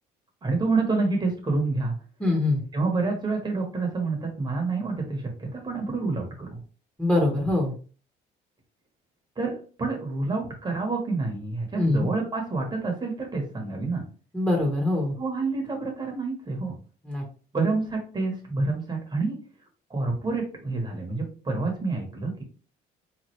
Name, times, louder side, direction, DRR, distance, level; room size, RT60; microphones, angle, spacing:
voice 1, 0.4-1.9 2.7-6.6 9.4-9.5 9.8-14.0 15.2-16.7 17.5-19.4 19.9-22.4, right 3 dB, 25° right, 1 dB, 1.2 m, -28 dB
voice 2, 2.2-2.6 7.0-7.7 11.8-12.1 14.3-15.1 17.0-17.2, left 2 dB, 5° left, 0 dB, 1.2 m, -23 dB
3.5 x 3.2 x 3.2 m, 0.38 s
cardioid pair, 110°, 17 cm